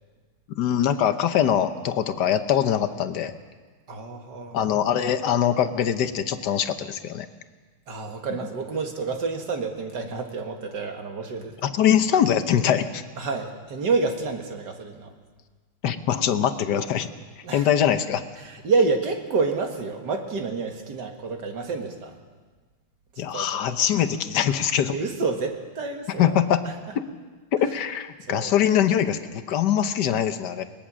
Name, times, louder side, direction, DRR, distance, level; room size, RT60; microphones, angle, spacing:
voice 1, 0.6-3.3 4.5-7.3 11.6-13.0 15.8-17.1 17.5-18.2 23.2-25.0 26.2-26.6 26.9-27.0 27.6-30.6, left 9 dB, 60° left, 9 dB, 1.4 m, -23 dB
voice 2, 3.9-4.6 7.9-11.7 13.2-15.1 17.4-17.7 18.4-22.1 23.1-23.9 24.9-26.4 28.3-28.5, right 4 dB, 55° right, 4 dB, 2.4 m, -28 dB
21.5 x 19.0 x 6.3 m, 1.4 s
omnidirectional pair, 2.3 m